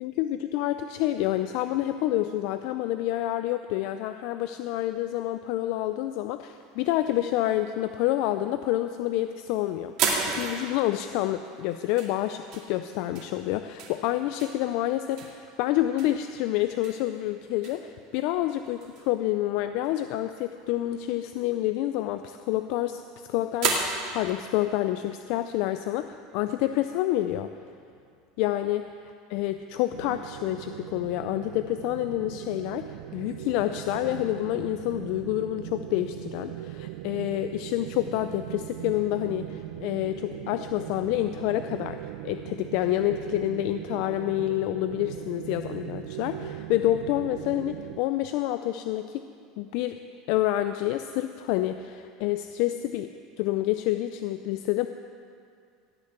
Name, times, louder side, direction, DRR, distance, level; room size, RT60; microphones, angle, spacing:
voice 1, 0.0-9.9 10.3-23.0 23.3-27.5 28.4-28.9 29.3-42.0 42.2-49.2 49.6-50.0 50.3-53.1 53.4-54.9, left 14 dB, 60° left, 9 dB, 0.4 m, -28 dB
sound 1, 6.8-7.5 8.3-8.8 9.2-9.4 10.0-18.1 18.6-19.1 19.5-19.6 19.8-19.9 20.2-20.5 20.8-20.9 21.8-23.0 23.6-25.7, right 5 dB, 55° right, 2.2 m, -33 dB
sound 2, 29.9-48.0, right 13 dB, 80° right, 0.4 m, -39 dB
17.0 x 5.9 x 7.8 m, 2.4 s
supercardioid pair, 145°, 0 cm